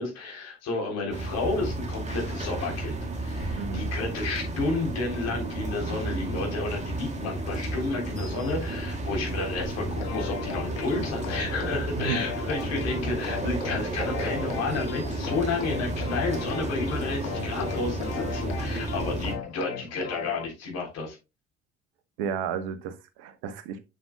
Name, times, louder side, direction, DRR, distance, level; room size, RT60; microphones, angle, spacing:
voice 1, 0.0-21.2, left 3 dB, 50° left, 3.7 m, -31 dB
sound 1, 1.1-19.4, right 2 dB, 20° right, 2.5 m, -32 dB
voice 2, 3.5-3.9 12.0-12.2 22.2-23.8, right 7 dB, 60° right, 1.1 m, -32 dB
sound 2, 10.0-20.5, left 9 dB, 65° left, 0.9 m, -37 dB
7.6 x 7.4 x 2.2 m
figure-of-eight pair, 50°, 32 cm